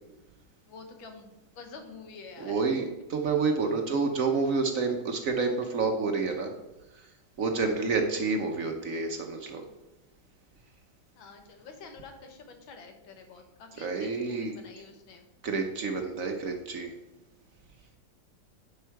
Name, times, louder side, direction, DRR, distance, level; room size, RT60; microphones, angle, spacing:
voice 1, 0.7-2.6 2.9-3.0 7.4-7.6 11.2-15.3, left 4 dB, 85° left, 5 dB, 2.0 m, -48 dB
voice 2, 2.4-2.8 3.1-6.5 7.4-9.6 13.8-14.5 15.4-16.9, right 4 dB, 55° right, 4 dB, 1.0 m, -28 dB
10.5 x 5.4 x 4.6 m, 1.0 s
omnidirectional pair, 2.1 m